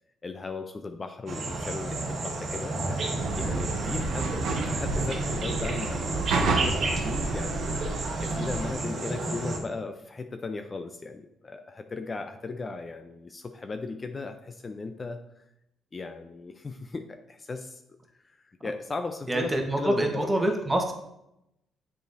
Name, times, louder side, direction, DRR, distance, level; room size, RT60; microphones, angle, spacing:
voice 1, 0.2-2.7 3.0-7.9 8.2-15.5 15.9-17.8 18.1-19.5 19.8-20.5, left 3 dB, 30° left, 7 dB, 0.4 m, -37 dB
sound 1, 1.3-9.6, right 2 dB, 55° right, 1.2 m, -32 dB
sound 2, 3.2-8.7, right 3 dB, 80° right, 0.8 m, -30 dB
voice 2, 19.3-20.9, right 1 dB, 20° right, 3 dB, 1.1 m, -26 dB
7.6 x 4.9 x 2.6 m, 0.83 s
cardioid pair, 90°, 0 cm